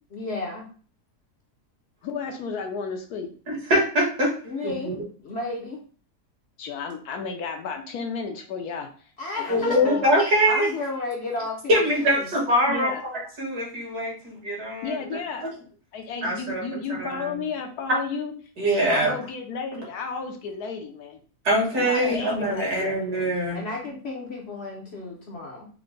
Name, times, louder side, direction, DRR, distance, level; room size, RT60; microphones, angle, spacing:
voice 1, 0.1-0.7 4.4-4.9 5.2-5.8 9.2-10.0 10.4-12.3 21.7-22.2 23.5-25.7, left 3 dB, 55° left, -1 dB, 0.8 m, -33 dB
voice 2, 2.0-3.3 6.6-8.9 9.4-10.0 12.7-13.0 14.8-15.5 15.9-18.3 18.8-21.2 21.7-23.0, left 5 dB, 75° left, 4 dB, 1.2 m, -32 dB
voice 3, 3.5-4.3 4.6-5.0 9.5-10.7 11.7-12.9 13.4-15.0 16.2-16.6 16.9-17.4 18.6-19.1 21.4-23.6, equal, 70° right, -3 dB, 2.0 m, -23 dB
4.6 x 2.1 x 3.8 m, 0.42 s
omnidirectional pair, 1.7 m